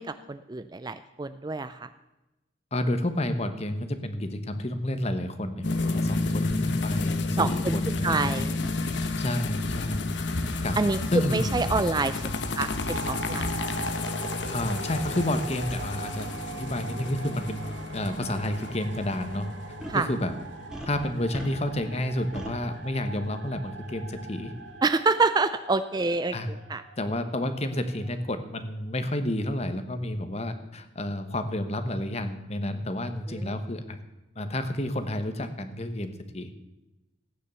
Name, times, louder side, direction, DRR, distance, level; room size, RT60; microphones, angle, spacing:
voice 1, 0.0-1.9 7.4-8.6 9.0-9.1 10.8-11.0 11.3-12.2 12.6-13.5 19.9-20.1 24.8-26.3 26.7-26.8 33.3-33.5, right 3 dB, 20° right, 12 dB, 0.4 m, -27 dB
voice 2, 2.7-8.4 9.2-10.1 10.6-10.8 11.1-11.7 14.5-19.5 19.9-20.3 20.8-24.5 26.3-26.5 27.0-34.0 34.3-36.7, left 1 dB, 30° left, 9 dB, 1.2 m, -30 dB
sound 1, 5.6-23.1 23.3-23.4 23.7-23.8 24.1-24.2 24.6-24.7, left 2 dB, 60° left, 1.1 m, -31 dB
sound 2, 7.1-7.2 8.6-8.8 10.4-10.7 12.4-12.6 13.5-13.6 14.4-14.5 14.7-14.9 16.2-16.3 17.7-17.9 18.2-18.3 19.8-20.1 20.7-21.8 22.3-22.6, right 1 dB, 5° right, 1.8 m, -41 dB
sound 3, 12.8-28.8, right 3 dB, 70° right, 1.6 m, -42 dB
15.5 x 9.7 x 6.9 m, 0.99 s
head